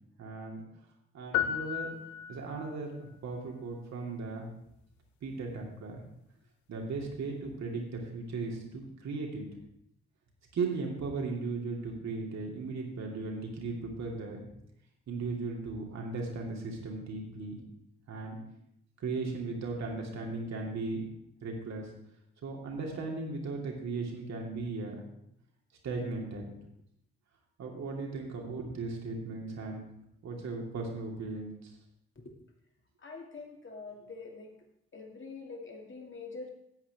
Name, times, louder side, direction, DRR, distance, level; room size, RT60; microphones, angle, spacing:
voice 1, 0.2-0.6 1.1-1.9 2.3-4.5 5.2-6.0 6.7-9.5 10.5-14.4 15.1-17.6 18.1-18.4 19.0-21.1 21.4-21.9 22.4-25.0 25.8-26.5 27.6-29.9 30.2-31.7, right 3 dB, 60° right, 0 dB, 2.6 m, -37 dB
sound 1, 1.3-2.8, left 10 dB, 70° left, 0.8 m, -33 dB
voice 2, 33.0-34.5 34.9-36.5, left 4 dB, 40° left, 1 dB, 2.5 m, -45 dB
13.0 x 8.2 x 3.5 m, 0.76 s
hypercardioid pair, 40°, 30 cm